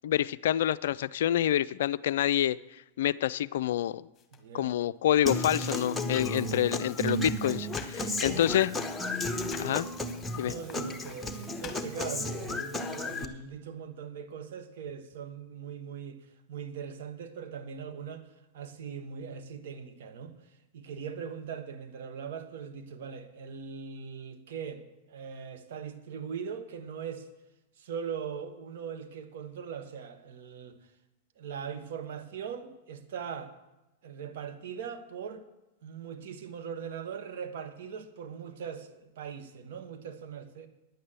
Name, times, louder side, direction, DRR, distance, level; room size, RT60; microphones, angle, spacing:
voice 1, 0.0-2.6 3.0-4.1 4.5-8.7 9.6-9.9 10.4-10.5, left 11 dB, 60° left, 17 dB, 0.3 m, -27 dB
sound 1, 4.2-4.4 5.5-8.0 8.4-11.8, left 7 dB, 25° left, 1.5 m, -47 dB
voice 2, 4.3-4.8 8.0-8.5 10.3-16.2 16.5-18.3 18.5-20.3 20.7-27.3 27.8-30.8 31.4-33.5 34.0-35.4 35.8-40.7, right 7 dB, 60° right, 7 dB, 1.3 m, -40 dB
Human voice / Acoustic guitar, 5.3-13.2, left 1 dB, 10° left, 1.1 m, -33 dB
10.0 x 8.5 x 7.7 m, 1.0 s
figure-of-eight pair, 95°, 0 cm